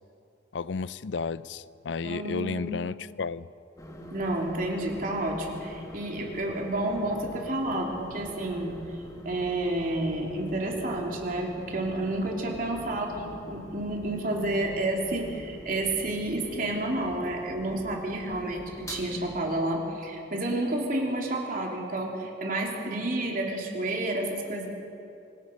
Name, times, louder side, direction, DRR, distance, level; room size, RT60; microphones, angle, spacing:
voice 1, 0.5-3.5, left 4 dB, 85° left, 17 dB, 0.5 m, -32 dB
voice 2, 2.0-2.8 4.1-8.7 9.2-24.7, right 1 dB, 50° right, 0 dB, 3.2 m, -30 dB
sound 1, 3.8-19.4, equal, 20° left, 2.2 m, -44 dB
26.0 x 19.0 x 5.3 m, 2.8 s
head